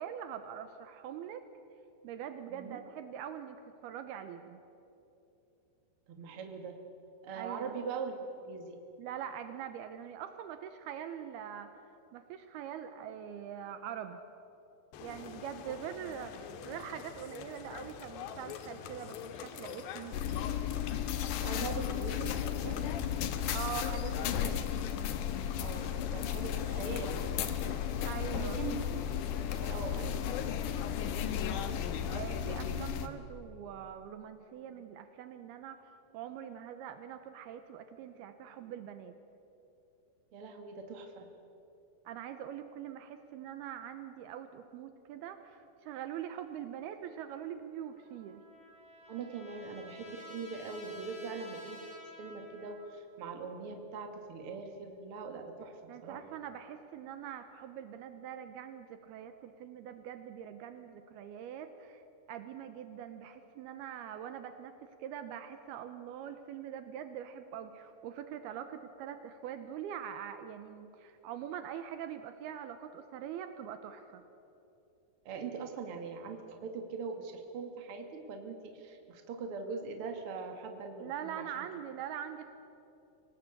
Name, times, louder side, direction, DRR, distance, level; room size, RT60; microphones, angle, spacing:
voice 1, 0.0-1.5 2.0-4.6 7.3-7.8 9.0-11.7 12.1-14.2 15.0-20.2 23.5-24.7 28.1-28.6 32.1-39.1 42.1-48.4 55.9-62.0 62.3-74.2 81.0-82.5, right 9 dB, 80° right, 9 dB, 2.7 m, -43 dB
voice 2, 2.5-2.8 6.1-6.8 7.2-8.8 21.4-22.9 25.6-27.8 28.3-28.8 29.4-30.5 40.3-41.3 49.1-51.9 52.2-56.2 75.2-81.7, right 4 dB, 45° right, 4 dB, 2.2 m, -42 dB
sound 1, 14.9-32.6, left 8 dB, 90° left, 3.4 m, -46 dB
sound 2, 20.1-33.1, left 9 dB, 70° left, 2.1 m, -34 dB
Trumpet, 47.9-53.1, left 1 dB, 30° left, 4.0 m, -52 dB
25.0 x 18.0 x 8.4 m, 2.9 s
omnidirectional pair, 4.9 m